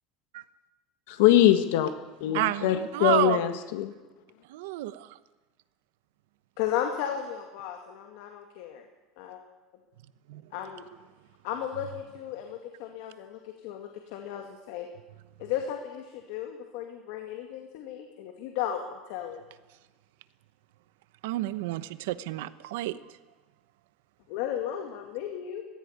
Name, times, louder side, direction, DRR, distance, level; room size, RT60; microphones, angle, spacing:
voice 1, 1.1-1.9 2.2-3.9, left 12 dB, 80° left, 8 dB, 1.7 m, -22 dB
voice 2, 2.3-3.5 4.5-5.1 10.3-10.4 21.2-23.0, right 16 dB, 90° right, 14 dB, 1.0 m, -30 dB
voice 3, 6.6-8.8 9.2-9.4 10.5-10.8 11.4-14.9 15.4-19.4 24.3-25.6, left 10 dB, 65° left, 4 dB, 2.2 m, -35 dB
18.0 x 15.5 x 9.6 m, 1.2 s
cardioid pair, 175°, 0 cm